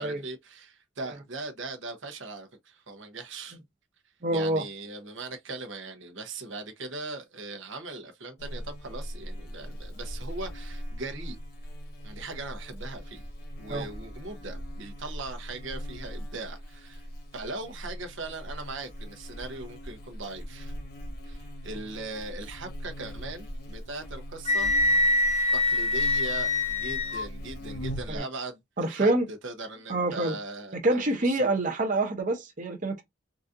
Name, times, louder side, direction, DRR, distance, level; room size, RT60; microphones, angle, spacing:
voice 1, 0.0-3.6 4.3-11.4 12.0-13.2 13.6-17.1 17.3-20.7 21.3-24.7 25.5-31.5, right 3 dB, 80° right, 1.0 m, -40 dB
voice 2, 4.2-4.6 13.7-13.8 28.1-28.2 28.8-29.3 29.9-30.4 30.8-33.0, right 2 dB, 40° right, 0.7 m, -26 dB
Buzz, 8.4-28.2, equal, 55° left, 1.2 m, -40 dB
Wind instrument woodwind instrument, 24.4-27.3, left 2 dB, 35° left, 0.8 m, -24 dB
4.0 x 2.5 x 2.5 m
head